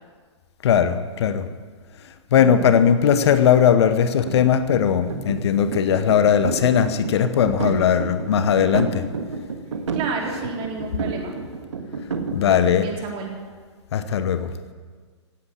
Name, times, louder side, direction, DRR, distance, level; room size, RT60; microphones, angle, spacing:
voice 1, 0.6-1.5 2.3-9.1 12.3-12.9 13.9-14.5, left 8 dB, 60° left, 11 dB, 1.1 m, -19 dB
voice 2, 2.4-2.8 7.6-8.1 9.9-11.4 12.7-13.3, right 4 dB, 35° right, 0 dB, 3.8 m, -31 dB
sound 1, 4.2-12.8, right 4 dB, 80° right, 1.7 m, -31 dB
16.5 x 9.1 x 8.4 m, 1.5 s
hypercardioid pair, 115°, 15 cm